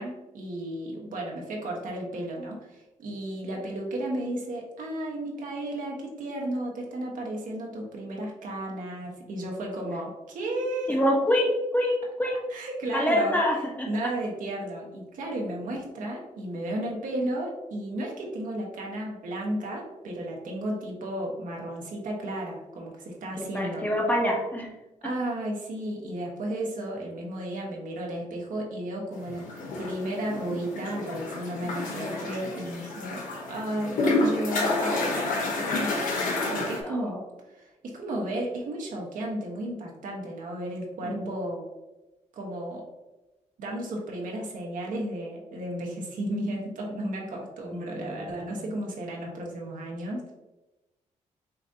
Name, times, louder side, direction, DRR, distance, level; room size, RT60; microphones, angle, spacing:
voice 1, 0.0-11.0 12.5-13.4 13.9-23.8 25.0-29.4 29.8-33.2 33.5-36.0 36.5-41.7 42.3-42.8 43.6-50.3, right 1 dB, 75° right, -1 dB, 1.1 m, -33 dB
voice 2, 10.9-12.5 12.9-13.9 23.4-24.8 36.8-37.0 41.0-41.3 47.7-47.9, equal, 10° left, 0 dB, 0.9 m, -26 dB
sound 1, 29.3-36.8, left 2 dB, 90° left, 0.9 m, -29 dB
5.7 x 2.6 x 2.6 m, 1.0 s
cardioid pair, 85°, 13 cm